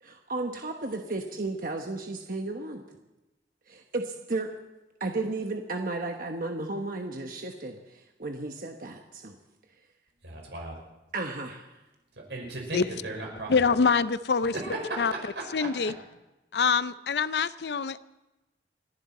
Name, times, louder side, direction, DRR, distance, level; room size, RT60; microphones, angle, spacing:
voice 1, 0.0-2.8 3.7-4.5 5.0-9.3 11.1-11.7, right 2 dB, 50° right, 3 dB, 1.2 m, -34 dB
voice 2, 10.2-10.8 12.2-13.5 14.5-15.2 15.6-15.7, right 2 dB, 90° right, 0 dB, 5.4 m, -35 dB
voice 3, 13.5-14.5 15.0-15.1 15.5-15.9 16.5-18.0, left 5 dB, 70° left, 15 dB, 0.5 m, -25 dB
29.0 x 11.0 x 4.3 m, 1.0 s
head